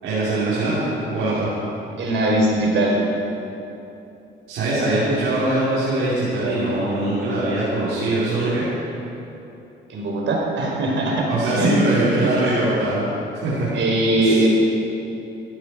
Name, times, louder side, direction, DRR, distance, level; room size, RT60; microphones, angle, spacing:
voice 1, 0.0-1.5 4.5-8.6 11.3-13.0 13.4-13.7 14.2-14.4, right 2 dB, 90° right, -10 dB, 4.8 m, -22 dB
voice 2, 2.0-2.9 9.9-11.7 12.1-12.5 13.7-14.5, right 1 dB, 70° right, -1 dB, 4.6 m, -21 dB
17.5 x 14.5 x 5.0 m, 2.9 s
cardioid pair, 90°, 20 cm